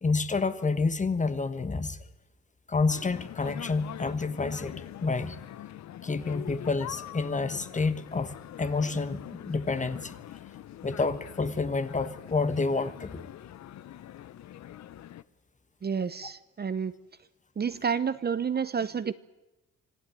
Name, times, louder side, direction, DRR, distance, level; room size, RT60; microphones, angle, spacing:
voice 1, 0.0-2.0 2.7-5.4 6.0-10.1 10.8-13.2, left 4 dB, 25° left, 1.4 m, -29 dB
sound 1, 2.9-15.2, left 12 dB, 65° left, 0.8 m, -44 dB
voice 2, 15.8-16.9 17.6-19.1, right 6 dB, 35° right, 0.8 m, -29 dB
26.0 x 16.0 x 9.1 m
cardioid pair, 90°, 30 cm